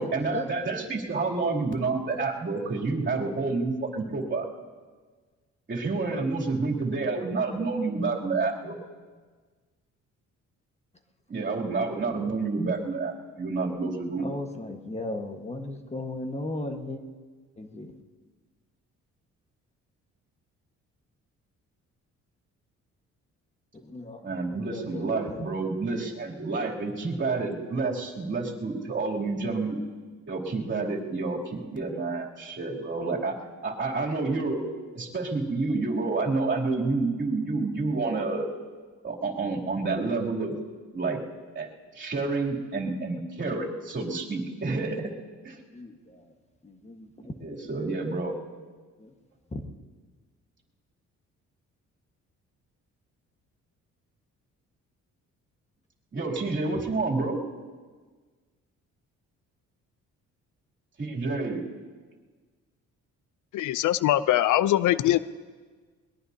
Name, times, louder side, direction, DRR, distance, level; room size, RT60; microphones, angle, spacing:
voice 1, 0.0-4.5 5.7-8.8 11.3-14.3 24.2-29.8 30.3-33.4 33.6-38.5 39.0-40.5 40.9-41.2 41.5-41.7 41.9-45.1 45.4-45.6 47.4-48.3 56.1-57.4 61.0-61.6, right 3 dB, 40° right, -3 dB, 3.0 m, -29 dB
voice 2, 14.2-17.0 17.6-17.9 23.8-24.2 24.6-25.5 45.7-45.9 46.6-47.1 49.0-49.1, left 2 dB, 20° left, 4 dB, 1.5 m, -36 dB
voice 3, 63.5-65.2, left 13 dB, 80° left, 16 dB, 0.5 m, -22 dB
22.0 x 21.0 x 2.8 m, 1.5 s
cardioid pair, 90°, 30 cm